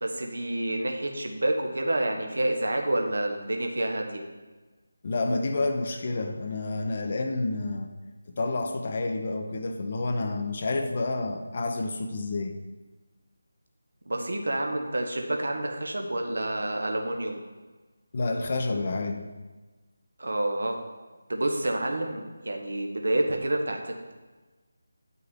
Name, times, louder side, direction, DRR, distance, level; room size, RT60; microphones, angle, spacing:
voice 1, 0.0-4.2 14.1-17.4 20.2-20.8 21.3-24.1, right 1 dB, 60° right, 3 dB, 1.1 m, -28 dB
voice 2, 5.0-7.9 8.3-12.5 18.1-19.3, left 2 dB, 35° left, 5 dB, 0.7 m, -29 dB
9.4 x 6.0 x 3.7 m, 1.3 s
figure-of-eight pair, 155°, 0 cm